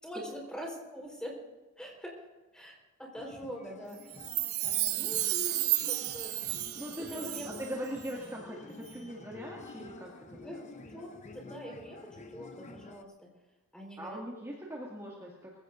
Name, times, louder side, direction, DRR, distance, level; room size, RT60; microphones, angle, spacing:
voice 1, 0.0-1.4 1.8-2.2 2.5-4.4 4.9-6.5 6.9-7.5 10.4-10.6 10.9-13.3 13.7-14.2, equal, 5° left, -2 dB, 4.3 m, -44 dB
sound 1, 3.1-13.0, left 3 dB, 35° left, 0.8 m, -50 dB
Chime, 4.1-7.7 8.0-8.1, right 16 dB, 75° right, 0.7 m, -32 dB
voice 2, 6.7-10.5 14.0-15.6, equal, 15° right, -5 dB, 2.2 m, -41 dB
25.5 x 16.0 x 2.6 m, 1.2 s
head